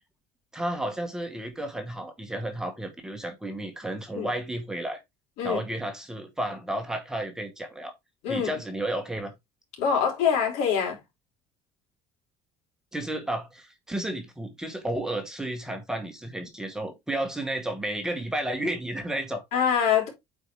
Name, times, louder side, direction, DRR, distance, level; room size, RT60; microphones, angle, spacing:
voice 1, 0.5-5.0 5.4-7.9 8.3-9.3 12.9-19.4, right 1 dB, 5° right, 1.1 m, -32 dB
voice 2, 9.8-11.0 19.5-20.1, left 7 dB, 75° left, 3.6 m, -24 dB
8.3 x 4.4 x 3.4 m
cardioid pair, 180°, 11 cm